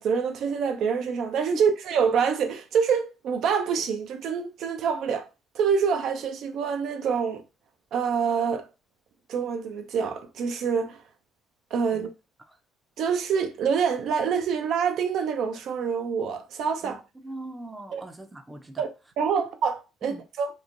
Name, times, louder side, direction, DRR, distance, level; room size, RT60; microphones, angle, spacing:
voice 1, 0.0-5.3 5.5-7.4 7.9-8.7 9.3-11.0 11.7-12.1 13.0-17.0 17.9-18.0 18.8-20.5, right 6 dB, 65° right, 0.4 m, -26 dB
voice 2, 17.2-18.9 20.0-20.2, right 2 dB, 15° right, 0.5 m, -41 dB
2.9 x 2.1 x 2.5 m
cardioid pair, 110°, 0 cm